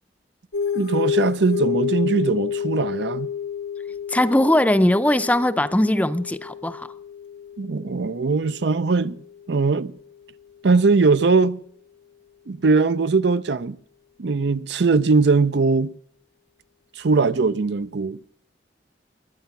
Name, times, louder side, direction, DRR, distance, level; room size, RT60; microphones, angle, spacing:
sound 1, 0.5-9.5, left 7 dB, 85° left, 1.0 m, -30 dB
voice 1, 0.7-3.3 7.6-9.2 9.5-10.0 10.6-11.6 12.5-13.8 14.2-15.9 17.0-18.2, right 4 dB, 75° right, 0.6 m, -20 dB
voice 2, 4.1-6.9, left 1 dB, 10° left, 0.5 m, -20 dB
21.0 x 9.2 x 5.9 m
head